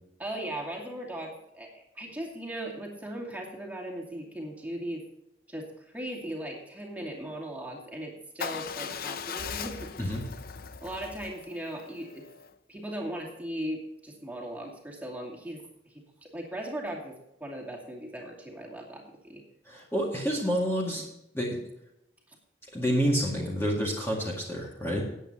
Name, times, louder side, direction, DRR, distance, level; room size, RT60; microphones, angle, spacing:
voice 1, 0.2-5.0 5.5-9.9 10.8-12.2 12.7-19.4 22.3-22.4, right 1 dB, 10° right, -2 dB, 2.5 m, -38 dB
Motorcycle / Engine starting / Idling, 8.4-12.5, left 6 dB, 50° left, 0.6 m, -39 dB
voice 2, 19.7-21.0 21.3-21.6 22.7-25.0, equal, 15° left, -3 dB, 2.0 m, -28 dB
19.0 x 8.4 x 2.9 m, 0.84 s
head